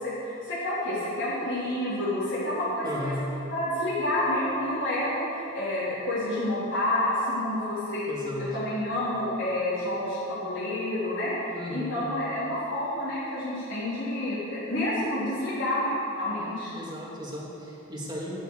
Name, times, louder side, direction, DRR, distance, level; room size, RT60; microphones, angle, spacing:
voice 1, 0.0-3.1 3.5-8.1 8.4-16.7, left 1 dB, 65° left, -10 dB, 3.7 m, -29 dB
voice 2, 2.8-3.3 8.1-8.5 11.5-12.0 16.7-18.4, left 1 dB, 20° right, -4 dB, 2.6 m, -35 dB
12.5 x 10.5 x 6.6 m, 3.0 s
head